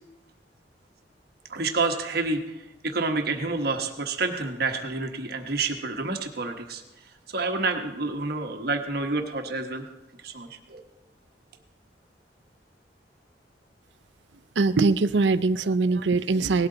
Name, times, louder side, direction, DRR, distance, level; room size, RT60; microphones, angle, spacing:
voice 1, 1.5-6.8 7.3-9.8 10.2-10.8, right 3 dB, 60° right, 4 dB, 1.2 m, -29 dB
voice 2, 14.6-16.7, right 3 dB, 90° right, 13 dB, 0.6 m, -22 dB
18.0 x 12.5 x 3.9 m, 1.0 s
head